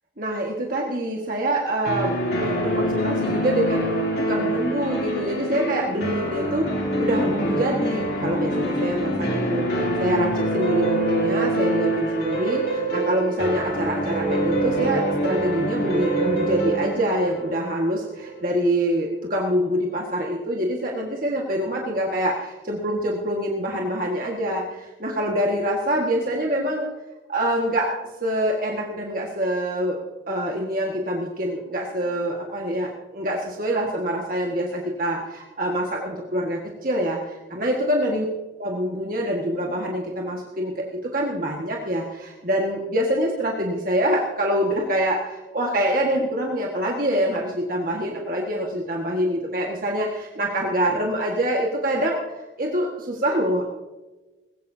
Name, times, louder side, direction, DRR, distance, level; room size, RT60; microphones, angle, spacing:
voice 1, 0.2-26.9 27.3-30.0 30.3-38.3 38.6-52.2 52.6-53.6, equal, 45° right, -1 dB, 1.7 m, -25 dB
sound 1, 1.9-18.6, right 1 dB, 55° left, 3.1 m, -25 dB
20.0 x 17.0 x 2.8 m, 1.2 s
head